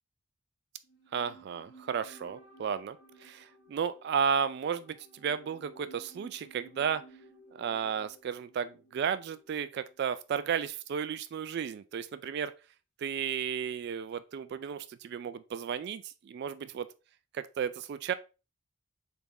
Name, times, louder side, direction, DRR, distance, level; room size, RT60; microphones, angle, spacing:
sound 1, 0.8-10.2 10.4-10.5, right 1 dB, 55° left, 1.8 m, -57 dB
voice 1, 1.1-7.0 7.5-12.5 13.0-16.9 17.3-18.1, right 7 dB, 55° right, 0.3 m, -33 dB
4.1 x 3.5 x 3.5 m
head